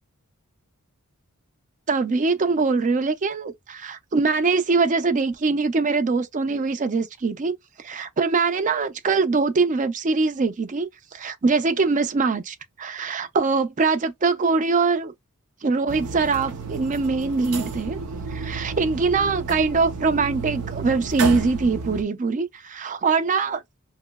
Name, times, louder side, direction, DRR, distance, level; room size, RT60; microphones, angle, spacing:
voice 1, 1.9-15.1 15.6-18.0 18.3-23.6, right 4 dB, 35° right, 0.4 m, -23 dB
sound 1, 15.9-22.0, right 4 dB, 85° right, 0.7 m, -31 dB
3.0 x 2.7 x 2.2 m
head